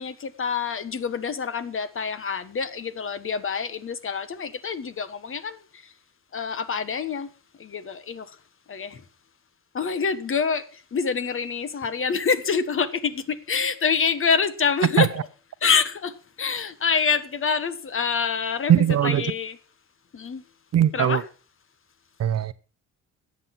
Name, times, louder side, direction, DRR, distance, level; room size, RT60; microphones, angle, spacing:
voice 1, 0.0-5.9 6.3-7.3 7.6-8.4 8.7-9.0 9.7-15.1 15.6-19.6 20.1-20.4 20.9-21.2, left 5 dB, 45° left, 1.3 m, -26 dB
voice 2, 18.7-19.3 20.7-21.2 22.2-22.5, right 10 dB, 55° right, 0.9 m, -20 dB
13.5 x 8.6 x 5.8 m
cardioid pair, 90°, 30 cm